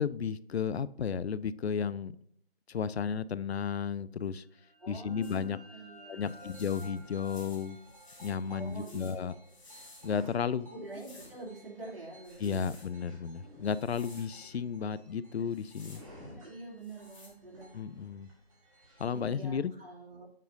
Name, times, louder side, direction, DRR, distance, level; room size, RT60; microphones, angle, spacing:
voice 1, 0.0-2.1 2.7-4.4 4.9-5.6 6.1-7.8 8.2-9.3 10.0-10.7 12.4-16.0 17.7-18.3 19.0-19.7, left 7 dB, 75° left, 18 dB, 0.5 m, -33 dB
sound 1, 4.4-9.9, equal, 5° right, 1.1 m, -55 dB
voice 2, 4.8-6.5 8.5-9.3 10.7-12.7 15.9-16.0 16.4-17.8 19.1-20.3, right 2 dB, 65° right, -4 dB, 2.9 m, -46 dB
sound 2, 5.2-5.4 6.2-10.3 10.9-11.4 12.2-12.9 13.7-14.3 15.4-16.0 16.8-17.3, left 2 dB, 30° left, 1.9 m, -56 dB
sound 3, 6.2-19.2, equal, 35° right, 2.1 m, -55 dB
7.3 x 6.4 x 2.7 m, 0.68 s
figure-of-eight pair, 165°, 32 cm